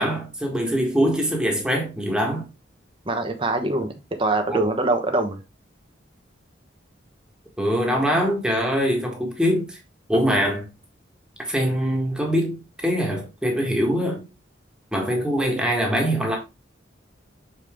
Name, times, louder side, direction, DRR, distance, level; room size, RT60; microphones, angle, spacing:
voice 1, 0.0-2.5 4.5-4.7 7.6-9.8 10.1-10.7 11.4-14.2 14.9-16.4, equal, 5° right, 1.6 m, -23 dB
voice 2, 3.1-3.9 4.2-5.4, right 2 dB, 25° right, 1.1 m, -23 dB
6.9 x 4.6 x 3.6 m
head